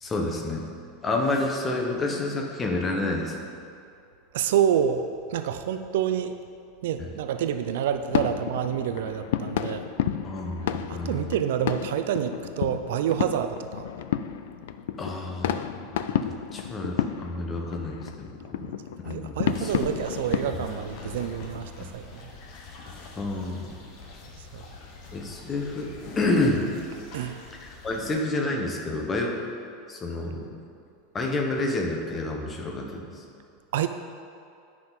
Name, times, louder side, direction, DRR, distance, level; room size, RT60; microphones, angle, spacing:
voice 1, 0.0-0.7 1.0-3.4 7.0-7.1 10.2-11.3 15.0-15.7 16.2-18.7 19.0-19.9 21.8-21.9 23.2-23.7 25.1-26.6 27.6-29.4 29.9-30.5 31.1-33.2, left 2 dB, 15° left, 1 dB, 0.7 m, -29 dB
voice 2, 4.3-6.3 6.8-9.8 10.9-13.9 18.6-18.7 19.0-22.3 24.5-24.6 27.1-27.4 33.7-33.9, right 9 dB, 75° right, 9 dB, 0.4 m, -28 dB
sound 1, 8.1-21.7, left 10 dB, 75° left, 0.3 m, -32 dB
sound 2, 19.4-28.1, left 4 dB, 40° left, 1.0 m, -44 dB
9.4 x 5.9 x 3.9 m, 2.5 s
supercardioid pair, 175°, 0 cm